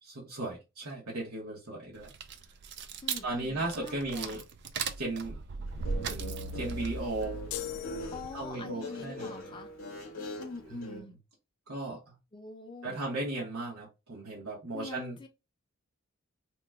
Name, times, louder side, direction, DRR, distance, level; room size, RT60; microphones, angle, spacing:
voice 1, 0.1-2.1 3.2-4.4 5.0-5.4 6.0-7.4 8.3-9.6 10.6-11.1 11.7-12.1 12.8-15.2, right 2 dB, 85° right, 1.1 m, -36 dB
sound 1, 2.0-8.5, right 4 dB, 50° right, 0.3 m, -38 dB
voice 2, 3.0-4.4 8.1-9.7 10.4-11.2 12.3-13.0 14.7-15.3, left 3 dB, 20° left, 0.5 m, -44 dB
Guitar, 5.7-11.0, left 1 dB, 65° left, 0.8 m, -42 dB
sound 2, 7.5-8.9, left 13 dB, 85° left, 0.4 m, -41 dB
2.9 x 2.2 x 3.4 m
head